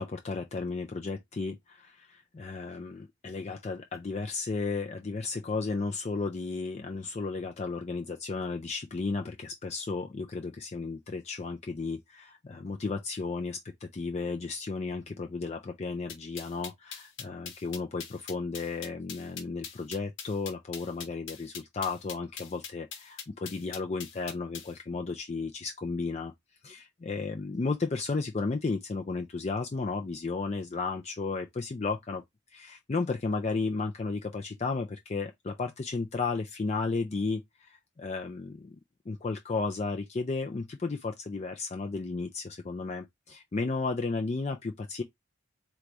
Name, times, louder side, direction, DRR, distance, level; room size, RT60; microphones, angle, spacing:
voice 1, 0.0-26.3 26.6-32.2 32.5-38.7 39.1-45.0, left 3 dB, 30° left, 0.4 m, -34 dB
sound 1, 16.1-24.7, left 7 dB, 60° left, 1.0 m, -42 dB
3.9 x 2.3 x 4.6 m
head